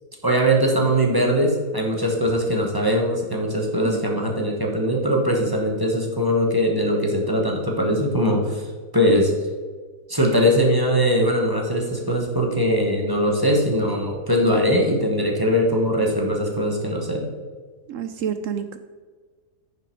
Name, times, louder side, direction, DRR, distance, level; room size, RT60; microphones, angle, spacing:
voice 1, 0.2-8.7 8.9-9.3 10.1-17.3, equal, 15° right, 0 dB, 1.2 m, -21 dB
voice 2, 17.9-18.8, right 8 dB, 70° right, 9 dB, 0.8 m, -28 dB
9.8 x 6.9 x 4.6 m, 1.5 s
omnidirectional pair, 1.7 m